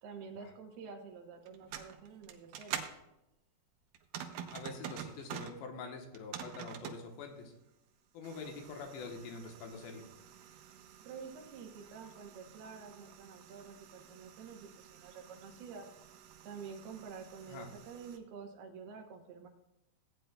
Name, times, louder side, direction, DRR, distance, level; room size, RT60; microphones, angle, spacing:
voice 1, 0.0-3.0 11.0-15.9 16.4-19.5, right 5 dB, 75° right, 2 dB, 2.8 m, -49 dB
sound 1, 1.5-3.0 3.9-5.6 6.0-7.0 8.2-18.2, right 9 dB, 90° right, 1.9 m, -48 dB
voice 2, 4.5-7.5 8.1-10.1 17.5-17.7, left 4 dB, 80° left, 3 dB, 3.3 m, -45 dB
16.5 x 9.2 x 2.3 m, 0.89 s
omnidirectional pair, 5.0 m